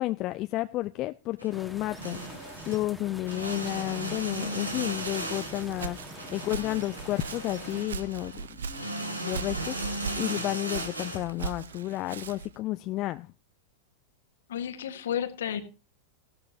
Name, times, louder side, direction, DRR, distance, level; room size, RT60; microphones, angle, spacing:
voice 1, 0.0-8.5 9.2-13.3, left 17 dB, 35° left, 0.5 m, -32 dB
sound 1, 1.4-1.5 1.9-2.9 3.2-11.5, right 1 dB, 85° right, 2.6 m, -37 dB
sound 2, 1.5-7.9, equal, ahead, 1.7 m, -45 dB
Walk footsteps, 4.7-12.6, right 5 dB, 65° right, 0.7 m, -40 dB
voice 2, 14.5-15.6, left 9 dB, 60° left, 1.5 m, -32 dB
16.0 x 12.5 x 2.8 m
figure-of-eight pair, 90°, 0 cm